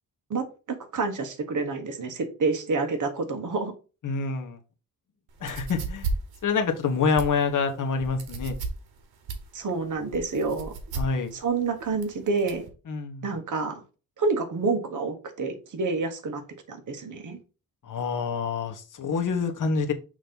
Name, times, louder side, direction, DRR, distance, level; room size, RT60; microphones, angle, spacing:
voice 1, 0.3-3.7 9.5-10.7 11.3-12.7 13.2-13.8 14.2-16.4 16.7-17.4, right 4 dB, 55° right, 5 dB, 1.4 m, -28 dB
voice 2, 4.0-4.6 5.4-6.1 6.4-8.6 10.9-11.3 12.9-13.3 17.8-19.9, left 5 dB, 55° left, 4 dB, 1.2 m, -27 dB
sound 1, 5.3-12.7, right 4 dB, 90° right, 1.3 m, -35 dB
6.3 x 2.9 x 5.3 m, 0.33 s
wide cardioid pair, 115°, 36 cm